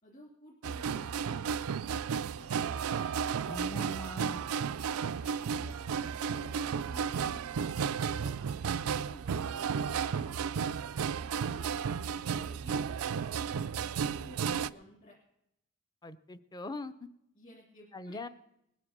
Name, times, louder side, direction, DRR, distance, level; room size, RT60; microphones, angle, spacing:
voice 1, 0.0-3.4 4.8-11.7 12.1-15.2 17.3-18.2, equal, 35° left, -3 dB, 3.0 m, -54 dB
sound 1, 0.6-14.7, right 7 dB, 70° right, 0.4 m, -33 dB
voice 2, 3.5-4.4 16.0-16.9 17.9-18.3, left 1 dB, 20° left, 12 dB, 0.6 m, -41 dB
20.0 x 7.4 x 6.7 m, 0.80 s
head